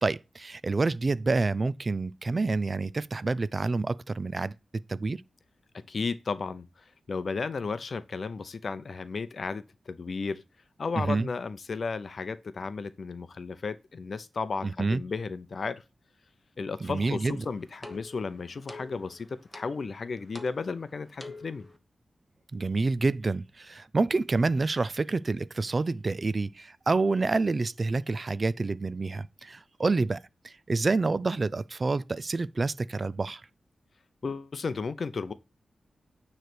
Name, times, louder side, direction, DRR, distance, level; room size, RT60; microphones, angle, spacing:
voice 1, 0.0-5.2 11.0-11.3 14.6-15.0 16.8-17.4 22.5-33.4, right 3 dB, 40° right, 0.4 m, -28 dB
voice 2, 5.9-10.4 10.8-15.8 16.6-21.7 34.2-35.3, left 4 dB, 55° left, 0.6 m, -34 dB
sound 1, 17.2-21.8, left 2 dB, 5° left, 1.1 m, -48 dB
9.3 x 3.3 x 6.0 m
wide cardioid pair, 95°, 0 cm